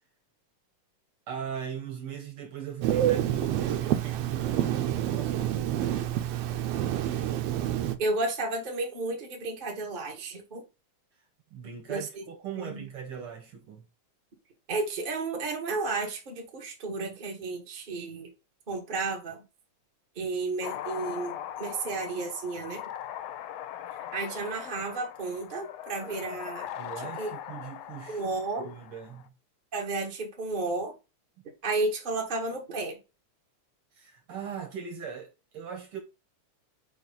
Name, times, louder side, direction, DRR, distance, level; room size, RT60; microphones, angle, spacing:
voice 1, 1.3-5.7 11.5-13.9 26.8-28.2 28.6-29.3 33.9-36.0, right 8 dB, 60° right, 1.5 m, -39 dB
Telephone, 2.8-8.0, right 11 dB, 80° right, 1.4 m, -28 dB
voice 2, 8.0-10.6 11.9-12.2 12.5-12.8 14.7-18.3 18.7-19.4 20.1-22.8 23.9-26.7 27.2-27.3 28.1-28.7 29.7-30.9 31.6-33.0, right 3 dB, 45° right, 0.6 m, -32 dB
sound 1, 20.6-29.3, left 11 dB, 80° left, 1.5 m, -40 dB
5.0 x 4.8 x 3.9 m
omnidirectional pair, 3.4 m